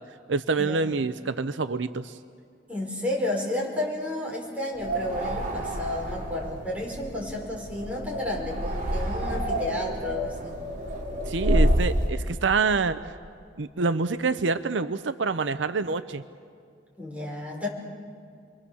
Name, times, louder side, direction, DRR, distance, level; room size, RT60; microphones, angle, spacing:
voice 1, 0.3-2.2 11.2-13.1 13.6-16.2, right 4 dB, 70° right, 12 dB, 0.7 m, -26 dB
voice 2, 2.7-10.6 17.0-17.7, left 1 dB, 10° right, -2 dB, 5.5 m, -32 dB
sound 1, 4.8-12.1, equal, 45° right, 3.6 m, -28 dB
29.5 x 23.0 x 7.1 m, 2.2 s
head